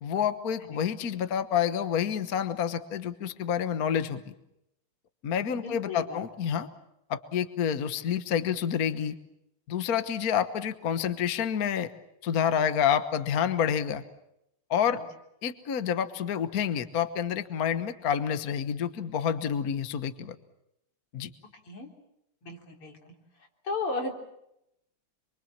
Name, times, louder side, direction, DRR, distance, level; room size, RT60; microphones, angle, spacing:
voice 1, 0.0-4.2 5.2-6.7 7.1-9.2 9.7-11.9 12.2-14.0 14.7-15.0 15.4-20.3 21.1-21.3, left 8 dB, 50° left, 11 dB, 1.5 m, -28 dB
voice 2, 5.5-6.2 14.9-15.0 21.6-21.9 22.4-23.1 23.6-24.1, left 3 dB, 85° left, 2 dB, 4.6 m, -35 dB
27.0 x 24.5 x 7.4 m, 0.81 s
omnidirectional pair, 2.4 m